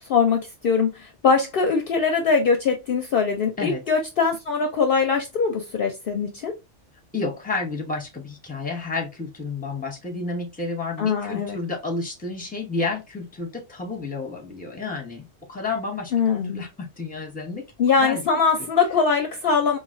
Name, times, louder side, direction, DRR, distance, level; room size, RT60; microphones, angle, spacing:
voice 1, 0.0-6.5 11.0-11.6 16.1-16.7 17.8-19.8, left 5 dB, 60° left, 0.7 m, -22 dB
voice 2, 7.1-17.7 18.0-18.2, left 3 dB, 10° left, 0.9 m, -31 dB
4.0 x 2.7 x 2.5 m
omnidirectional pair, 1.2 m